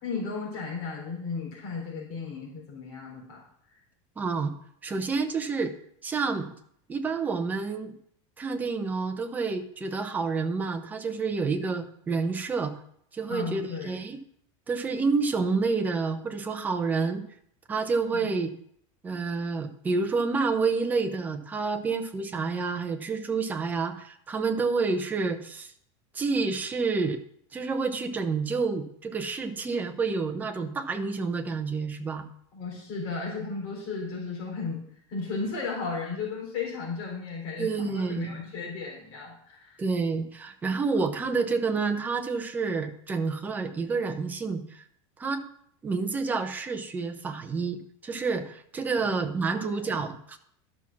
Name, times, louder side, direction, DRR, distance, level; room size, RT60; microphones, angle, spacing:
voice 1, 0.0-3.4 13.3-14.0 18.1-18.3 32.5-34.8 35.1-39.8 49.0-49.1 49.5-50.0, left 4 dB, 50° left, -2 dB, 3.8 m, -35 dB
voice 2, 4.2-4.5 4.8-5.7 6.0-6.5 6.9-7.9 8.4-12.7 13.1-14.2 14.7-17.2 17.7-18.5 19.0-25.7 26.1-27.2 27.5-32.3 37.6-38.4 39.8-44.8 45.2-45.5 45.8-50.4, right 4 dB, 10° right, 6 dB, 0.7 m, -29 dB
11.5 x 6.1 x 5.9 m, 0.67 s
supercardioid pair, 180°, 15 cm